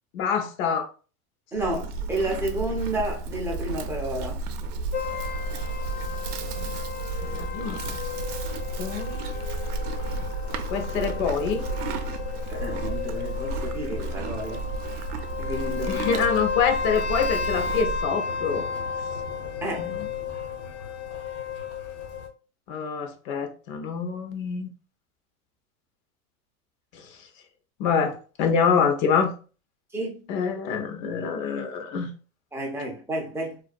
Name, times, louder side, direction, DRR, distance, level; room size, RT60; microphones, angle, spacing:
voice 1, 0.1-0.9 6.6-6.7 7.2-8.0 8.8-9.4 10.7-11.7 15.9-18.7 19.7-20.1 22.7-24.7 26.9-27.1 27.8-29.3 30.3-32.1, left 6 dB, 60° left, 0.7 m, -26 dB
voice 2, 1.5-4.4 12.5-14.7 15.4-16.1 19.6-19.9 29.9-30.2 32.5-33.6, right 1 dB, 5° right, 0.3 m, -31 dB
Livestock farm animals working animals, 1.6-18.1, right 3 dB, 80° right, 0.6 m, -32 dB
sound 1, 4.9-22.3, left 6 dB, 80° left, 1.2 m, -33 dB
2.4 x 2.2 x 2.4 m
hypercardioid pair, 110°, 44 cm